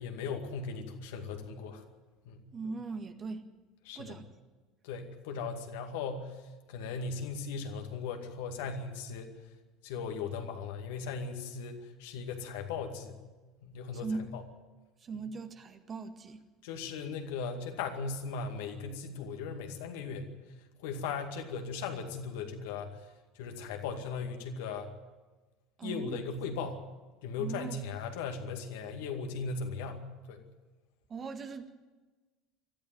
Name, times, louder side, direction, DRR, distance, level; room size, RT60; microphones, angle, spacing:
voice 1, 0.0-1.8 2.2-2.5 3.8-4.2 4.8-6.4 6.7-9.3 9.8-13.2 13.6-14.4 16.6-20.3 20.8-23.0 23.4-24.9 25.8-26.8 27.2-30.4, left 5 dB, 65° left, 5 dB, 2.3 m, -38 dB
voice 2, 2.5-3.4 4.0-4.3 13.9-14.3 15.0-16.4 25.8-26.2 27.4-27.8 31.1-31.7, right 4 dB, 35° right, 7 dB, 1.9 m, -39 dB
21.0 x 13.5 x 9.4 m, 1.3 s
figure-of-eight pair, 70°, 0 cm